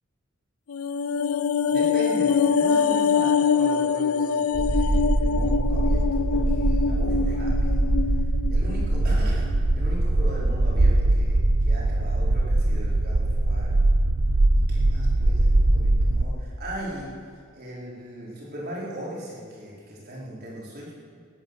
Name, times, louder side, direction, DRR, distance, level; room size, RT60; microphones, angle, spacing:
sound 1, 0.7-9.1 9.4-9.6, left 6 dB, 70° left, 0.5 m, -24 dB
voice 1, 1.6-7.9 8.5-9.4 9.8-13.7 14.5-17.1 17.5-20.9, equal, 50° right, -5 dB, 4.7 m, -38 dB
sound 2, 4.5-16.3, right 2 dB, 85° right, 0.9 m, -22 dB
18.0 x 9.6 x 8.1 m, 2.1 s
head